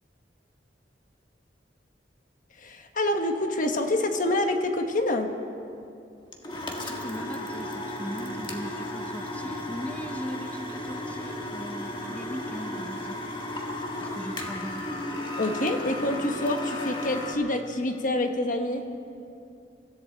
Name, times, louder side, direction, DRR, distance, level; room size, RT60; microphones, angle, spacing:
voice 1, 2.6-5.3 15.4-18.9, left 1 dB, 50° left, 5 dB, 1.3 m, -27 dB
sound 1, 6.3-17.3, left 1 dB, 30° left, 1.6 m, -34 dB
voice 2, 6.8-13.2 14.0-14.8, equal, 10° left, 3 dB, 0.7 m, -39 dB
24.5 x 14.0 x 4.1 m, 2.6 s
head